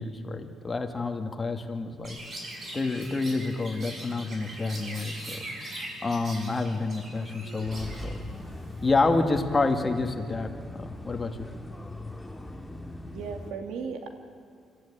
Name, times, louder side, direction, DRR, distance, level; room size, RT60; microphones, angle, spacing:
voice 1, 0.0-2.2 2.7-5.5 6.0-8.2 8.8-11.5, left 3 dB, 25° left, 4 dB, 2.2 m, -28 dB
Chirp tweet, 2.0-8.9, right 1 dB, 45° right, 6.4 m, -41 dB
voice 2, 7.4-7.8 13.1-14.1, right 6 dB, 90° right, 5 dB, 2.4 m, -37 dB
sound 1, 7.6-13.5, left 1 dB, 10° left, 2.0 m, -41 dB
25.5 x 13.5 x 9.0 m, 2.2 s
cardioid pair, 90°, 0 cm